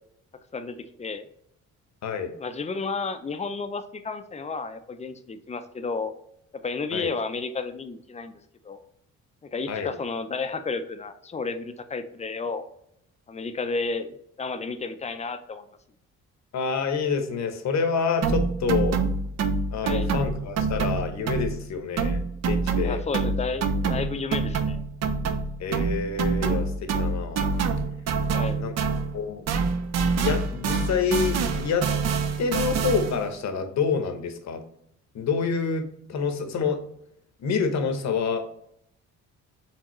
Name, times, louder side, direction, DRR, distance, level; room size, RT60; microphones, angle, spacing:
voice 1, 0.5-1.3 2.4-6.1 6.5-8.4 8.6-8.8 9.4-12.7 13.3-15.7 19.8-20.1 22.8-24.8 28.3-28.6, left 4 dB, 20° left, 9 dB, 0.5 m, -32 dB
voice 2, 16.5-19.0 19.7-23.0 25.6-27.4 28.6-28.7 29.1-29.4 30.1-31.9 32.4-34.6 35.1-36.8 37.4-38.5, left 5 dB, 65° left, 7 dB, 0.9 m, -27 dB
sound 1, 18.2-21.7 22.0-29.2 29.5-33.3, right 4 dB, 60° right, 0.6 m, -26 dB
4.6 x 3.5 x 3.0 m, 0.73 s
cardioid pair, 90°, 30 cm